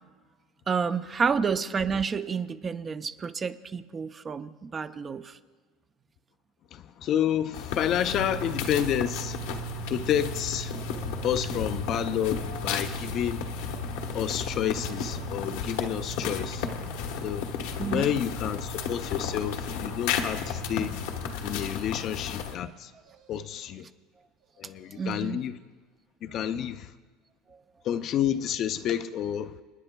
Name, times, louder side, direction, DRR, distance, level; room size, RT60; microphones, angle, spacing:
voice 1, 0.7-5.4 17.8-18.1 24.9-25.4 27.5-27.6, right 5 dB, 25° right, 0.5 m, -30 dB
voice 2, 6.7-9.4 9.9-10.8 11.2-13.4 14.1-16.7 17.2-17.5 17.9-21.0 21.4-22.9 23.3-23.9 24.6-25.6 26.2-26.9 27.8-29.6, left 10 dB, 45° left, 0.5 m, -29 dB
sound 1, 7.5-22.6, left 7 dB, 80° left, 1.2 m, -34 dB
sound 2, 8.1-21.7, right 11 dB, 70° right, 0.8 m, -41 dB
sound 3, 10.7-11.5 12.1-12.9 13.7-14.5 14.8-15.6 16.2-17.1 18.2-19.2 19.7-20.4 21.0-21.8 22.8-23.7 24.4-25.3 25.7-25.8, right 3 dB, 90° right, 3.0 m, -55 dB
29.5 x 9.9 x 2.3 m
supercardioid pair, 135°, 0 cm